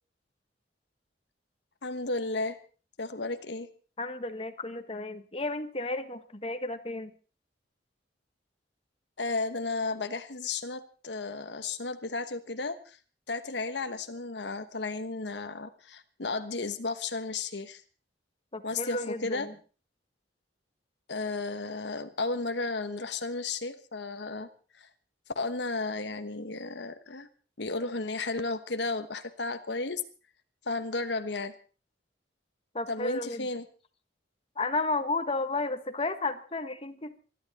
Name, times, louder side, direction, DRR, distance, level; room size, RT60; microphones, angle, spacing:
voice 1, 1.8-2.6 3.0-3.7 9.2-13.0 13.3-17.8 18.6-19.5 21.1-24.5 24.7-24.9 25.3-27.3 27.6-30.0 30.7-31.5 32.9-33.6, left 3 dB, 70° left, 9 dB, 1.2 m, -33 dB
voice 2, 4.0-7.1 18.5-19.5 32.7-33.5 34.5-37.2, left 2 dB, 30° left, 8 dB, 1.4 m, -33 dB
25.0 x 11.5 x 4.2 m, 0.38 s
head